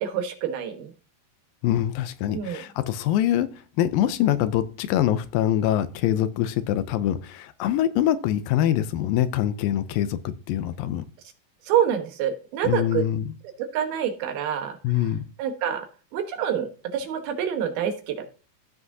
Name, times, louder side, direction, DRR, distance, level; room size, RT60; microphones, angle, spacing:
voice 1, 0.0-0.9 2.3-2.6 11.7-13.0 13.6-14.8 15.4-15.9 16.1-18.3, right 9 dB, 90° right, 3.1 m, -27 dB
voice 2, 1.6-11.0 12.6-13.3 14.8-15.2, left 11 dB, 80° left, 2.3 m, -24 dB
15.0 x 5.9 x 2.7 m
omnidirectional pair, 4.2 m